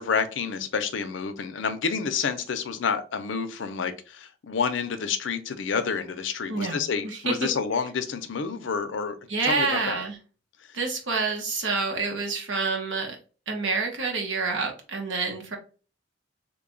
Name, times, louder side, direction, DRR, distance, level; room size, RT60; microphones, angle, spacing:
voice 1, 0.0-9.2 9.4-10.0, left 5 dB, 75° left, 9 dB, 0.5 m, -29 dB
voice 2, 6.5-7.5 9.3-10.2 10.7-13.2 13.5-15.6, right 4 dB, 80° right, 2 dB, 1.0 m, -28 dB
3.3 x 2.3 x 3.8 m, 0.37 s
head